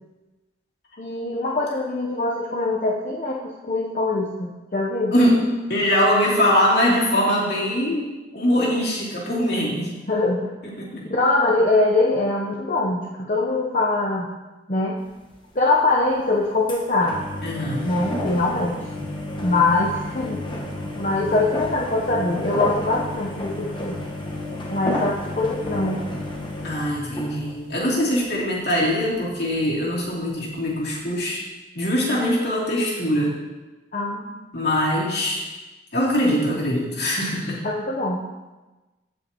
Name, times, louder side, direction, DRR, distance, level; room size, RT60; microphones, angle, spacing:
voice 1, 1.0-5.1 10.1-10.5 10.9-14.3 14.7-15.0 15.5-17.2 17.8-18.8 19.4-24.0 24.7-26.0 33.9-34.4 37.6-38.2, left 2 dB, 45° left, -3 dB, 0.7 m, -23 dB
voice 2, 5.1-10.0 10.6-11.0 17.4-17.9 26.6-31.4 31.7-33.3 34.5-35.4 35.9-37.6, equal, 65° left, -5 dB, 2.8 m, -22 dB
sound 1, 15.1-15.3 15.9-16.1 16.7-27.8 28.2-28.3 28.5-29.2 29.6-29.7 29.9-30.0 30.6-30.7, left 1 dB, 25° left, 1.2 m, -31 dB
16.0 x 5.7 x 2.9 m, 1.2 s
head